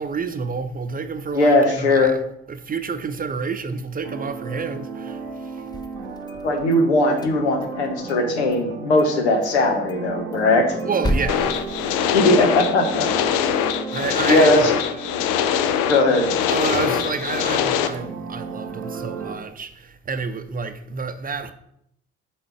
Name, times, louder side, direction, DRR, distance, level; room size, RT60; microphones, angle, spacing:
voice 1, 0.0-2.2 2.5-5.6 10.8-11.6 13.5-14.9 16.5-21.5, right 5 dB, 25° right, 0.7 m, -29 dB
voice 2, 1.3-2.1 6.4-10.7 12.1-13.1 14.3-14.7 15.9-16.3, left 2 dB, 80° left, 1.1 m, -19 dB
sound 1, 4.0-19.4, right 5 dB, 85° right, 1.0 m, -34 dB
sound 2, 5.6-6.8 7.1-8.2 8.5-8.6 9.0-9.1 9.4-9.5 9.9-12.5, equal, 10° left, 0.8 m, -31 dB
sound 3, 11.3-17.9, left 9 dB, 65° left, 0.6 m, -23 dB
7.6 x 4.1 x 4.8 m
figure-of-eight pair, 50°, 33 cm